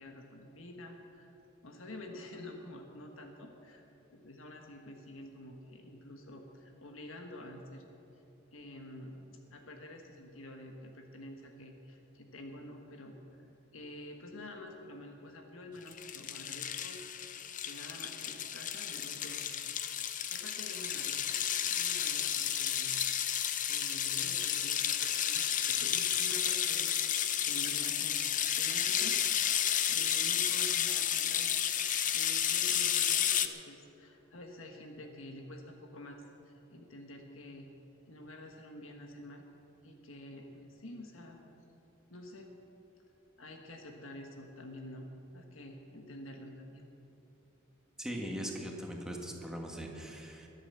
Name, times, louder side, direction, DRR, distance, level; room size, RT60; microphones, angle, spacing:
voice 1, 0.0-1.4 1.6-3.8 4.1-7.9 8.5-13.1 13.7-17.0 17.6-19.6 20.3-21.2 21.7-22.9 23.7-28.2 28.5-29.2 29.9-31.5 32.1-37.7 38.1-39.4 39.8-41.4 42.1-42.6 43.4-45.1 45.3-46.8, left 1 dB, 75° left, 3 dB, 1.5 m, -48 dB
sound 1, 15.9-33.5, left 9 dB, 40° left, 0.7 m, -32 dB
voice 2, 48.0-50.5, equal, 5° right, 0 dB, 1.8 m, -40 dB
22.5 x 8.2 x 7.0 m, 3.0 s
head